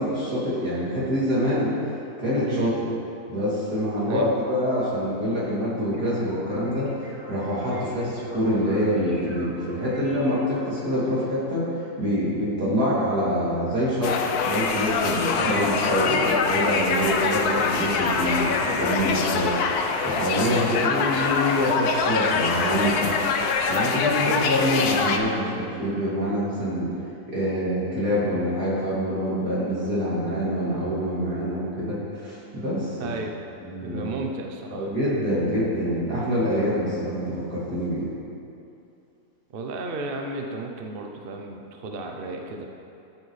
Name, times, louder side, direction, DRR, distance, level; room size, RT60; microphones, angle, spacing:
voice 1, 0.0-1.7 2.2-2.7 3.3-8.1 8.3-14.2 14.4-23.1 23.4-26.9 27.3-33.1 33.6-34.3 34.7-38.1, equal, 80° right, -9 dB, 3.4 m, -26 dB
sound 1, 5.9-10.9, equal, 25° right, 2.1 m, -44 dB
voice 2, 7.6-8.0 15.4-15.7 20.5-20.8 33.0-33.4 33.8-34.9 39.5-42.7, right 3 dB, 50° right, 2 dB, 0.7 m, -33 dB
sound 2, 14.0-25.2, left 5 dB, 80° left, 1.2 m, -24 dB
13.0 x 8.2 x 3.3 m, 2.7 s
omnidirectional pair, 1.7 m